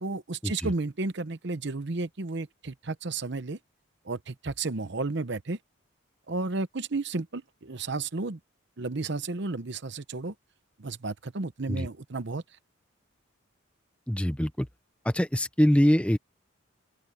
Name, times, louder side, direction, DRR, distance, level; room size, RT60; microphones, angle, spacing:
voice 1, 0.0-3.6 4.1-5.6 6.3-8.4 8.8-10.3 10.8-12.4, right 3 dB, 55° right, 0.8 m, -32 dB
voice 2, 14.1-14.7 15.0-16.2, equal, 5° left, 0.8 m, -24 dB
open air
head